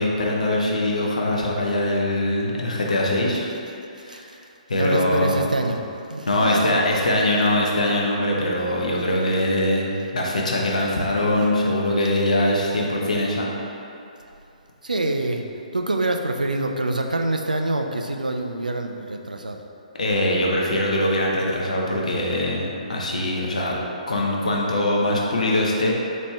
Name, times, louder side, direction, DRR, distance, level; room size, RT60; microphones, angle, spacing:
voice 1, 0.0-3.5 4.0-4.3 4.7-5.4 6.3-13.5 19.9-23.8 24.1-25.9, left 1 dB, 65° left, -2 dB, 0.6 m, -22 dB
voice 2, 4.7-5.8 6.1-6.8 14.8-15.4 15.7-19.6, right 2 dB, 80° right, 4 dB, 0.4 m, -25 dB
4.2 x 3.1 x 3.3 m, 2.7 s
figure-of-eight pair, 130°, 4 cm